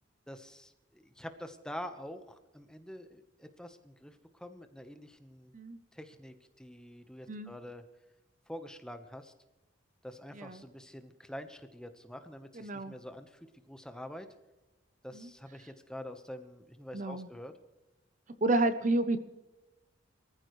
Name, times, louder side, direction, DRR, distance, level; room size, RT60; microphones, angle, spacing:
voice 1, 0.3-5.5 5.9-7.8 8.5-9.3 10.0-13.4 13.7-14.3 15.0-17.5, left 1 dB, 5° left, 7 dB, 1.0 m, -46 dB
voice 2, 12.5-12.9 15.1-15.3 16.9-17.3 18.4-19.2, right 2 dB, 40° right, 11 dB, 0.7 m, -30 dB
23.5 x 14.5 x 3.2 m, 1.0 s
head